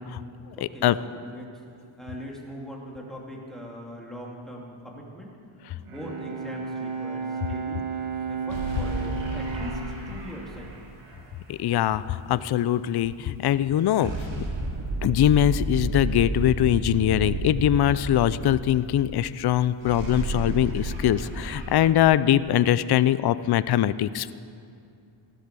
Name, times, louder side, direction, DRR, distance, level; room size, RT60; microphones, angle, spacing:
voice 1, 0.0-1.6 2.0-5.4 5.7-7.9 8.3-10.7, equal, ahead, -2 dB, 2.8 m, -41 dB
Bowed string instrument, 5.6-11.4, right 5 dB, 85° right, 2.2 m, -34 dB
sound 1, 8.5-11.4 14.0-19.4 19.6-21.9, right 2 dB, 60° right, 3.0 m, -32 dB
voice 2, 11.5-14.1 15.0-24.3, left 11 dB, 55° left, 16 dB, 0.5 m, -22 dB
15.0 x 11.5 x 6.8 m, 2.5 s
cardioid pair, 100°, 49 cm